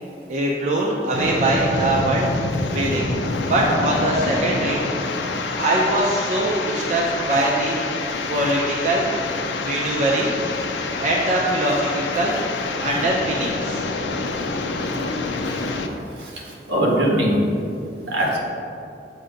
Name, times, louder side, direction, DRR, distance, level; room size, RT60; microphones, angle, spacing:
voice 1, 0.3-2.3 2.7-3.1 3.4-4.8 5.6-7.8 8.3-9.1 9.6-10.4 11.0-12.4 12.8-13.8, right 1 dB, 40° right, -3 dB, 0.6 m, -22 dB
sound 1, 1.1-15.9, left 3 dB, 90° left, 0.5 m, -27 dB
voice 2, 16.2-17.4 18.0-18.4, right 1 dB, 80° right, -3 dB, 1.3 m, -21 dB
7.7 x 2.8 x 5.0 m, 2.6 s
head